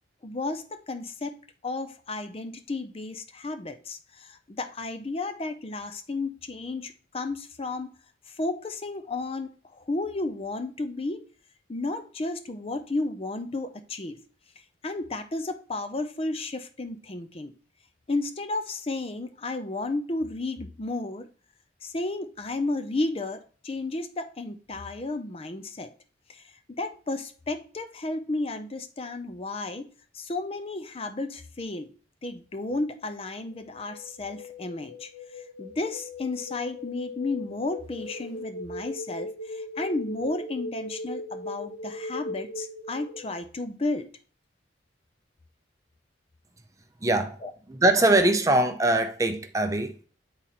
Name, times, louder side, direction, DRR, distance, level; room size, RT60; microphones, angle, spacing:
voice 1, 0.2-1.4 1.6-7.9 8.3-11.2 11.7-14.2 14.8-17.5 18.1-21.3 21.8-25.9 26.3-29.9 30.1-31.9 32.2-44.1 47.4-47.5, left 2 dB, 30° left, 0.5 m, -33 dB
sound 1, 33.5-43.4, left 2 dB, 85° left, 2.2 m, -39 dB
voice 2, 47.0-47.4 47.7-50.1, right 2 dB, 15° right, 0.6 m, -22 dB
8.8 x 4.0 x 4.1 m
head